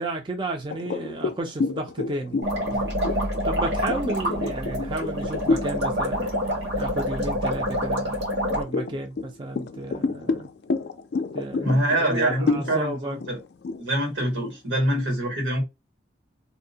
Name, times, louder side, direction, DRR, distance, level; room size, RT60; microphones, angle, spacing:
voice 1, 0.0-2.4 2.7-3.1 3.5-6.3 6.8-8.2 8.5-10.5 11.3-13.2, right 2 dB, 25° right, 0.4 m, -33 dB
sound 1, 0.7-5.8 6.3-6.5 7.0-7.8 8.3-15.0, left 3 dB, 60° left, 0.4 m, -29 dB
sound 2, 2.4-8.6, equal, 65° right, 0.9 m, -27 dB
voice 2, 11.6-13.4 13.8-15.6, right 1 dB, 90° right, 1.4 m, -25 dB
2.6 x 2.1 x 2.6 m
head